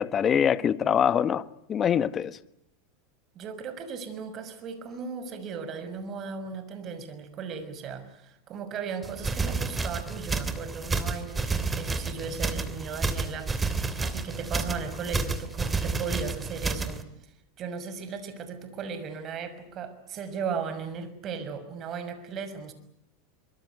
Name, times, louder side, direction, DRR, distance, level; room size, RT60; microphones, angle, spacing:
voice 1, 0.0-2.4, left 8 dB, 30° left, 1.4 m, -24 dB
voice 2, 3.3-17.0 17.6-22.7, right 6 dB, 40° right, 6.1 m, -36 dB
sound 1, 9.0-17.0, right 4 dB, 15° right, 3.0 m, -30 dB
24.5 x 24.5 x 9.6 m
hypercardioid pair, 100°, 0 cm